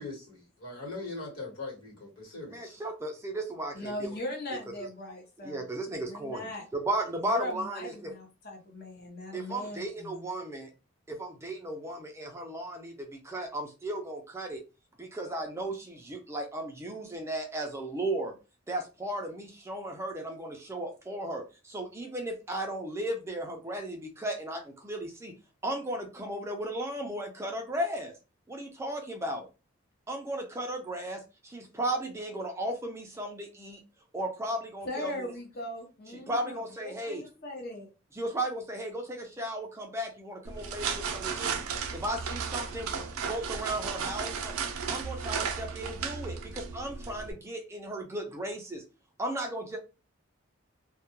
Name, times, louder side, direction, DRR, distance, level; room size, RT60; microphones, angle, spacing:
voice 1, 0.0-2.7, left 3 dB, 85° left, 1.3 m, -41 dB
voice 2, 2.5-4.1 5.4-8.1 9.3-10.7 11.1-14.6 15.0-18.3 18.7-25.3 25.6-28.1 28.5-29.5 30.1-33.8 34.1-35.1 36.3-37.2 38.1-41.6 41.9-44.6 44.9-48.8 49.2-49.8, right 1 dB, 15° right, 0.3 m, -35 dB
voice 3, 3.7-5.7 6.0-6.7 7.3-10.2 34.8-37.9, left 1 dB, 45° left, 0.6 m, -39 dB
sound 1, 40.4-47.3, right 6 dB, 80° right, 0.4 m, -34 dB
2.2 x 2.2 x 2.9 m
head